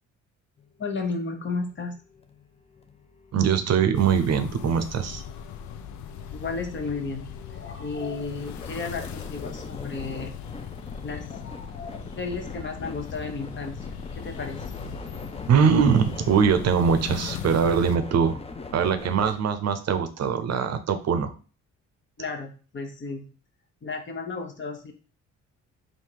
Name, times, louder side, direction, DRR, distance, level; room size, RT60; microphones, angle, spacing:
sound 1, 0.6-19.5, left 3 dB, 20° left, 0.6 m, -42 dB
voice 1, 0.8-1.9 6.3-10.3 11.0-13.9 14.1-14.6 22.2-23.3 23.8-24.9, left 4 dB, 40° left, 5 dB, 1.0 m, -33 dB
voice 2, 3.3-5.2 15.5-18.4 18.7-21.3, right 7 dB, 60° right, 9 dB, 0.6 m, -22 dB
sound 2, 3.9-18.0, left 8 dB, 70° left, 0.5 m, -39 dB
3.6 x 2.6 x 4.5 m, 0.37 s
cardioid pair, 90°, 30 cm